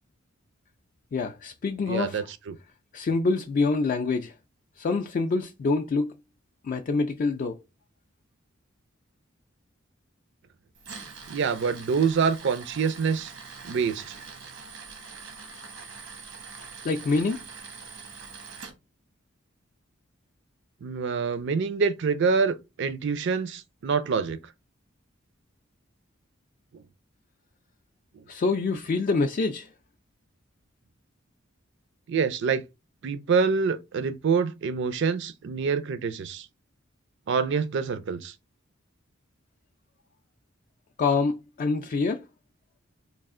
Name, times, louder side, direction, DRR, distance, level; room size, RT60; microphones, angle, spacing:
voice 1, 1.1-2.3 2.9-4.3 4.8-6.2 6.6-7.6 16.8-17.4 28.3-29.7 41.0-42.3, left 3 dB, 45° left, 0.3 m, -26 dB
voice 2, 1.8-2.6 11.3-13.3 13.6-14.2 20.8-24.4 28.1-28.2 32.1-32.6 33.0-36.5 37.3-38.3, right 5 dB, 65° right, 0.4 m, -26 dB
Tools, 10.7-18.7, right 5 dB, 90° right, 1.0 m, -43 dB
3.3 x 2.4 x 3.6 m
head